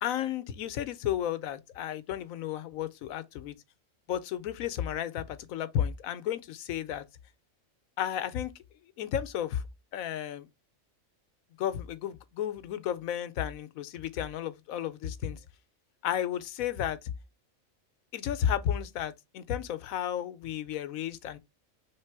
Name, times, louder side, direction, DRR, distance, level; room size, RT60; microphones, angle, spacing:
voice 1, 0.0-3.6 4.1-7.0 8.0-8.5 9.0-9.6 9.9-10.5 11.6-15.4 16.0-17.1 18.1-21.4, left 10 dB, 85° left, 1.0 m, -33 dB
3.6 x 3.2 x 4.6 m
omnidirectional pair, 1.4 m